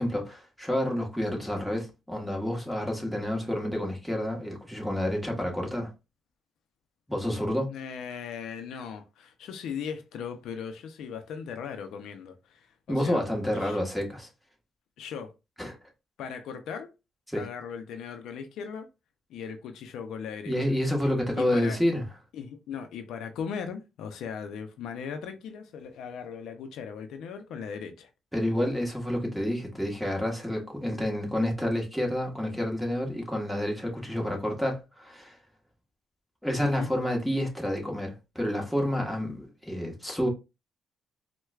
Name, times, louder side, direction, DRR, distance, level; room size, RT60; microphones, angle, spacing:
voice 1, 0.0-5.9 7.1-7.7 12.9-14.3 15.6-15.8 17.3-17.4 20.5-22.0 28.3-35.4 36.4-40.3, left 1 dB, ahead, 1.2 m, -29 dB
voice 2, 7.7-13.2 13.5-13.8 15.0-15.3 16.2-16.9 17.3-18.9 19.3-20.7 21.3-21.8 22.3-28.1 36.6-36.9, left 7 dB, 80° left, 0.5 m, -38 dB
4.4 x 2.2 x 2.3 m
cardioid pair, 90°, 0 cm